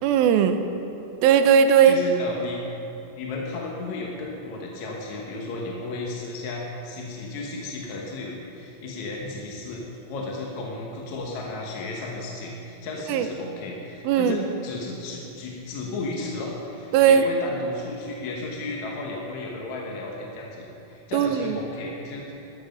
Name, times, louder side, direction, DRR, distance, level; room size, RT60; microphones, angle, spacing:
voice 1, 0.0-0.6 1.2-2.0 13.1-13.3 14.0-14.4 16.9-17.3 21.1-21.6, right 8 dB, 90° right, 8 dB, 2.5 m, -18 dB
voice 2, 1.9-2.6 3.1-22.5, left 2 dB, 60° left, -2 dB, 2.3 m, -34 dB
13.5 x 12.5 x 5.3 m, 2.9 s
omnidirectional pair, 4.2 m